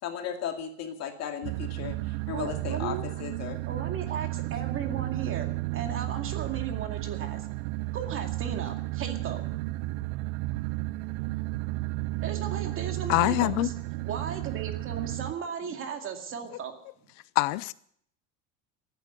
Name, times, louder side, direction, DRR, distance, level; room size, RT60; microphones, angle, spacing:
voice 1, 0.0-3.6, left 8 dB, 45° left, 2.3 m, -36 dB
sound 1, 1.4-15.3, right 19 dB, 85° right, 0.6 m, -33 dB
voice 2, 2.3-3.0 3.7-7.5 7.9-9.4 12.2-13.7 14.1-16.7, right 7 dB, 35° right, 2.2 m, -36 dB
voice 3, 13.1-13.7 17.4-17.7, left 21 dB, 75° left, 0.6 m, -24 dB
14.0 x 9.3 x 9.7 m
cardioid pair, 165°, 36 cm